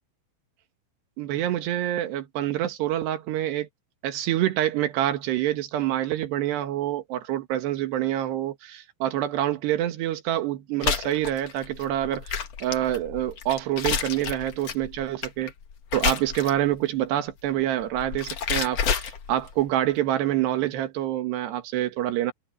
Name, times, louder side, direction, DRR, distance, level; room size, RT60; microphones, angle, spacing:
voice 1, 1.2-3.7 4.0-15.5 15.9-22.3, right 12 dB, 65° right, 3.3 m, -26 dB
sound 1, 10.8-16.8 17.8-19.6, left 7 dB, 60° left, 1.7 m, -29 dB
omnidirectional pair, 5.7 m